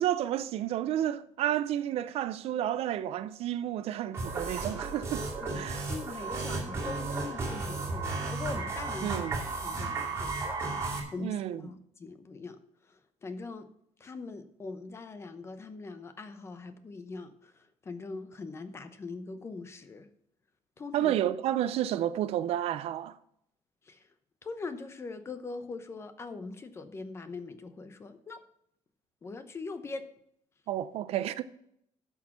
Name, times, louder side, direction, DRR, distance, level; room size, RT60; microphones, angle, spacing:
voice 1, 0.0-5.3 5.5-5.9 9.0-9.4 11.2-11.6 20.9-23.2 30.7-31.4, right 11 dB, 60° right, 0.5 m, -31 dB
sound 1, 4.1-11.0, right 3 dB, 20° right, 2.4 m, -34 dB
voice 2, 5.4-9.2 9.6-10.6 11.1-12.6 12.9-13.7 14.0-20.1 20.8-21.1 23.9-24.0 24.4-28.4 29.2-30.1, left 3 dB, 25° left, 0.8 m, -42 dB
11.0 x 6.3 x 5.8 m
cardioid pair, 165°, 11 cm